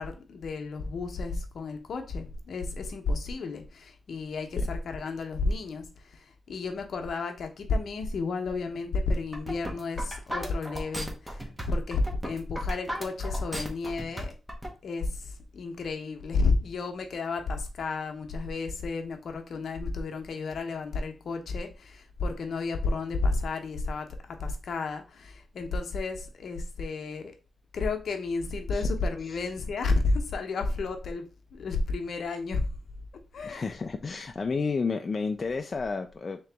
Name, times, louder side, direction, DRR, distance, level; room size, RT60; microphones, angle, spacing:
voice 1, 0.0-14.3 14.8-27.3 27.7-32.7 33.3-33.7, left 3 dB, 70° left, 0.8 m, -31 dB
sound 1, 9.1-14.7, equal, 15° right, 1.0 m, -36 dB
voice 2, 33.4-36.4, left 4 dB, 45° left, 0.4 m, -31 dB
3.7 x 2.9 x 3.4 m
cardioid pair, 75°, 0 cm